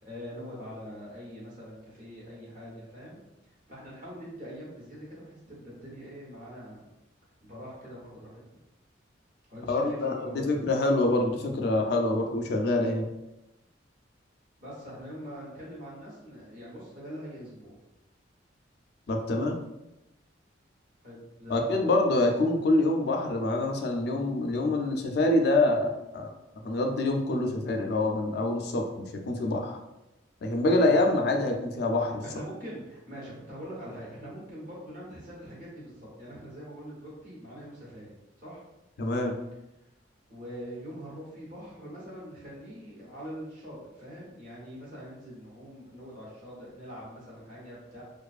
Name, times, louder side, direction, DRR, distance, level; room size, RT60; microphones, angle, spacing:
voice 1, 0.0-3.2 3.4-6.8 7.4-8.4 9.5-10.6 14.6-17.7 21.0-21.8 29.4-29.5 30.7-30.9 32.2-38.7 40.3-48.0, equal, 45° right, -6 dB, 1.0 m, -43 dB
voice 2, 9.7-13.1 19.1-19.6 21.5-26.3 26.6-29.7 30.4-32.2 39.0-39.3, left 2 dB, 60° left, 3 dB, 0.4 m, -26 dB
2.5 x 2.3 x 2.4 m, 0.93 s
head